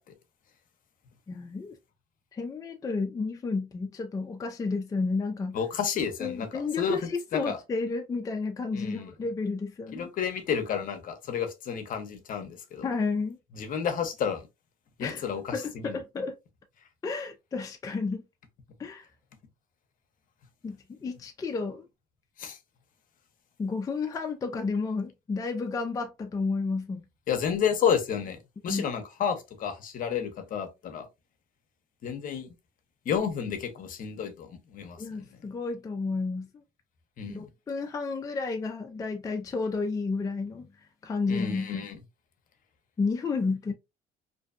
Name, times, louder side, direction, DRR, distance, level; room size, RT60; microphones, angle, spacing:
voice 1, 1.3-1.7 2.3-5.6 6.2-10.1 12.8-13.4 15.0-15.2 15.5-16.4 17.0-18.2 18.8-19.0 20.6-21.9 23.6-27.1 28.7-28.8 35.0-36.5 37.3-40.7 41.0-41.8 43.0-43.7, left 4 dB, 20° left, 0.4 m, -31 dB
voice 2, 5.5-7.0 7.3-7.6 8.7-9.1 9.9-12.9 13.5-14.5 15.0-15.5 15.8-16.0 22.4-22.6 27.3-31.1 32.0-32.5 33.1-35.4 37.2-37.5 41.3-42.0, left 7 dB, 55° left, 0.7 m, -31 dB
2.6 x 2.2 x 2.4 m
cardioid pair, 110°, 17 cm